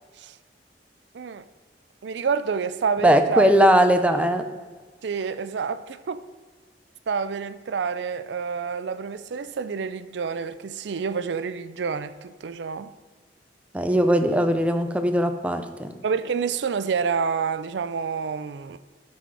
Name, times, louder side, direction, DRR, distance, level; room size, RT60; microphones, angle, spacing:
voice 1, 2.0-3.5 5.0-6.2 7.1-12.9 16.0-18.8, right 5 dB, 70° right, 0.4 m, -28 dB
voice 2, 3.0-4.4 13.7-15.9, equal, 10° right, 0.5 m, -19 dB
12.0 x 4.2 x 4.7 m
head